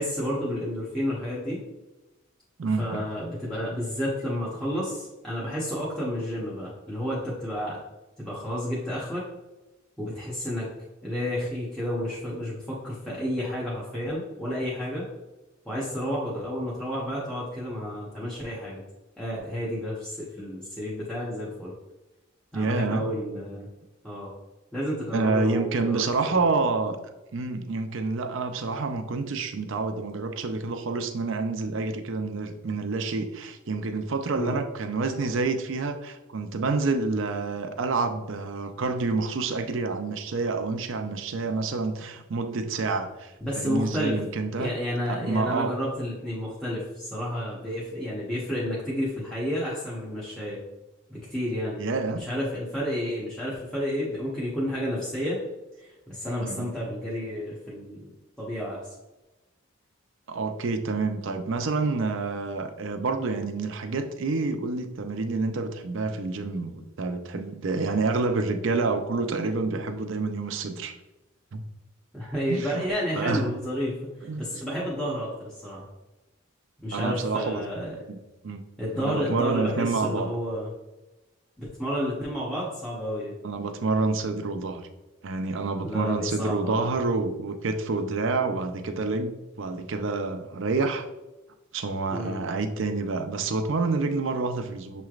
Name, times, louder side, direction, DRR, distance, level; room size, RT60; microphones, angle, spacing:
voice 1, 0.0-1.6 2.8-7.8 8.2-9.3 10.0-10.7 11.0-15.1 15.6-18.8 19.2-21.7 22.5-23.7 24.0-24.3 24.7-26.4 34.3-34.6 43.4-44.2 44.5-50.6 51.1-51.8 52.1-55.4 55.8-58.9 69.7-69.9 72.1-75.9 76.8-78.0 78.8-80.7 81.6-83.3 85.8-86.9 92.1-92.4, equal, 5° left, -8 dB, 0.8 m, -31 dB
voice 2, 2.6-3.0 22.5-23.0 25.1-27.0 27.3-44.7 45.0-45.8 51.8-52.3 56.4-56.7 60.3-70.9 71.5-71.6 72.5-72.8 73.1-73.5 74.2-74.4 76.9-77.6 78.1-78.6 78.9-80.3 83.4-84.9 85.2-91.1 91.7-95.0, right 3 dB, 60° right, 7 dB, 0.5 m, -28 dB
6.7 x 3.1 x 2.4 m, 1.0 s
head